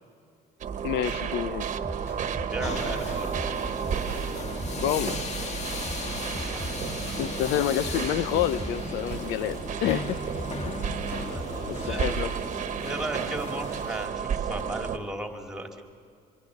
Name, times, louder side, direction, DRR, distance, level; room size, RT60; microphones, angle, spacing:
sound 1, 0.6-15.0, right 7 dB, 45° right, 1.3 m, -33 dB
sound 2, 0.7-1.3 1.8-4.3 4.6-12.3, left 1 dB, 15° left, 6.5 m, -41 dB
voice 1, 0.8-1.7 4.8-5.5 7.1-10.2 10.6-10.8 11.7-12.3, left 11 dB, 90° left, 15 dB, 0.7 m, -28 dB
voice 2, 2.5-3.3 6.1-6.7 11.2-12.2 12.7-15.7, right 1 dB, 5° right, 3 dB, 2.8 m, -36 dB
sound 3, 2.6-14.1, left 3 dB, 40° left, 1.8 m, -37 dB
26.0 x 22.0 x 6.5 m, 2.4 s
cardioid pair, 110°, 17 cm